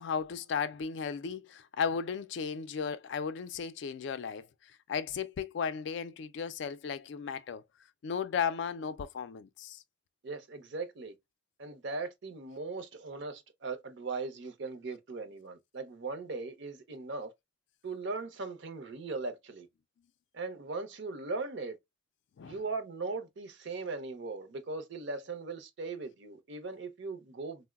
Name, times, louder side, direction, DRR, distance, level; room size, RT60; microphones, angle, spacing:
voice 1, 0.0-7.6 8.0-9.8 22.4-22.6, left 6 dB, 65° left, 0.3 m, -35 dB
voice 2, 10.2-11.2 11.6-17.3 17.8-19.7 20.3-21.8 22.4-27.7, right 3 dB, 65° right, 0.6 m, -39 dB
3.7 x 2.0 x 2.2 m
head